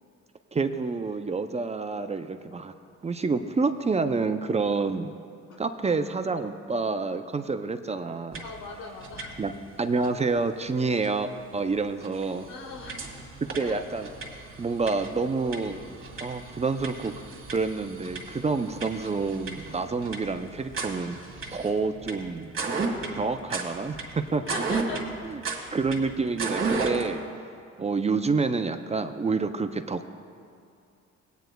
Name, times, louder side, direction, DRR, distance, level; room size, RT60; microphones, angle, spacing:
voice 1, 0.5-2.7 3.0-5.1 5.6-8.4 9.4-12.5 13.5-14.1 14.6-15.8 16.2-17.1 17.5-21.2 21.5-22.5 23.1-24.4 25.2-25.4 25.7-27.2 27.8-30.1, right 4 dB, 20° right, 8 dB, 0.4 m, -28 dB
sound 1, 8.3-8.7 8.9-9.6 10.0-10.1 11.0-11.1 11.6-11.7 12.0-27.1, right 4 dB, 45° right, 1.9 m, -35 dB
voice 2, 8.4-9.4 12.5-13.0 13.6-13.8 24.4-25.1 25.6-25.7, left 4 dB, 90° left, 4 dB, 1.2 m, -39 dB
18.5 x 9.1 x 2.2 m, 2.4 s
cardioid pair, 90°, 30 cm